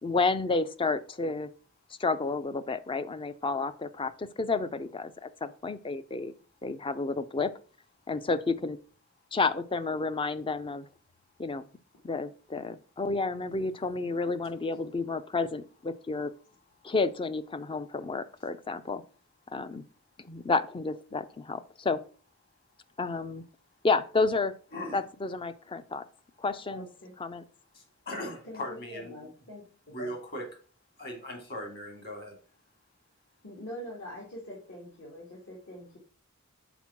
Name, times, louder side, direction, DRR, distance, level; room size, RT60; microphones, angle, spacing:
voice 1, 0.0-1.5 2.0-6.3 6.6-7.5 8.1-8.8 9.3-10.9 11.4-11.6 12.0-16.3 16.8-19.0 19.5-19.8 20.2-22.0 23.0-23.4 23.8-24.5 24.9-26.0 26.4-26.9 27.2-27.4, left 3 dB, 25° left, 0.4 m, -30 dB
voice 2, 24.7-25.0 27.7-29.1 29.9-30.5 31.0-32.4, left 1 dB, 45° left, 2.7 m, -39 dB
voice 3, 26.7-27.1 28.4-29.6 30.0-30.1 33.4-36.0, left 1 dB, 65° left, 2.5 m, -43 dB
6.0 x 4.5 x 5.8 m
head